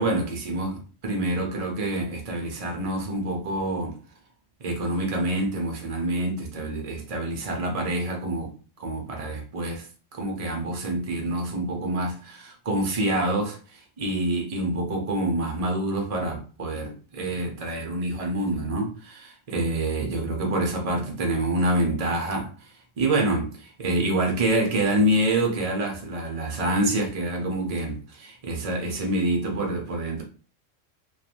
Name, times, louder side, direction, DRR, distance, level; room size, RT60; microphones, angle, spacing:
voice 1, 0.0-4.0 4.6-9.9 10.1-30.2, right 1 dB, 45° right, 0.5 m, -27 dB
2.9 x 2.3 x 2.5 m
omnidirectional pair, 1.3 m